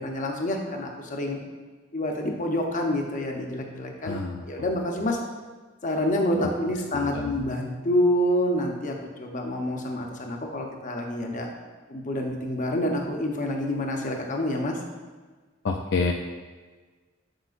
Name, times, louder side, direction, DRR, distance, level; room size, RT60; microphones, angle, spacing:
voice 1, 0.0-1.4 1.9-4.2 4.5-5.2 5.8-11.5 11.9-14.8, left 1 dB, 40° left, 2 dB, 0.8 m, -27 dB
voice 2, 4.0-4.4 7.0-7.4 15.6-16.1, left 4 dB, 65° left, 2 dB, 0.4 m, -28 dB
7.7 x 6.0 x 2.5 m, 1.4 s
head